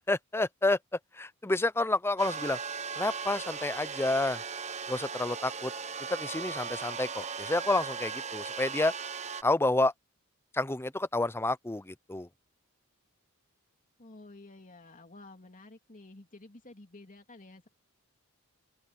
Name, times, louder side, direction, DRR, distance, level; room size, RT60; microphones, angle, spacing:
voice 1, 0.1-0.8 1.1-2.6 3.0-4.4 4.9-5.7 6.1-8.9 9.4-9.9 10.5-12.3, left 2 dB, 10° left, 0.6 m, -29 dB
sound 1, 2.2-9.4, right 5 dB, 30° right, 1.0 m, -38 dB
voice 2, 14.0-17.7, left 2 dB, 35° left, 2.9 m, -51 dB
head